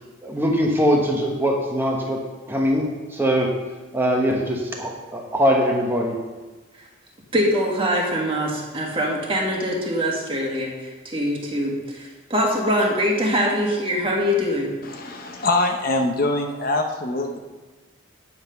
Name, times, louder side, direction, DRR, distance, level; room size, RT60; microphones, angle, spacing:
voice 1, 0.2-2.2 2.5-3.5 3.9-6.2, equal, 10° right, -1 dB, 1.1 m, -22 dB
voice 2, 7.3-14.7, equal, 25° right, -2 dB, 1.7 m, -23 dB
voice 3, 14.8-17.4, left 2 dB, 45° left, 3 dB, 0.8 m, -23 dB
9.4 x 5.8 x 5.7 m, 1.2 s
head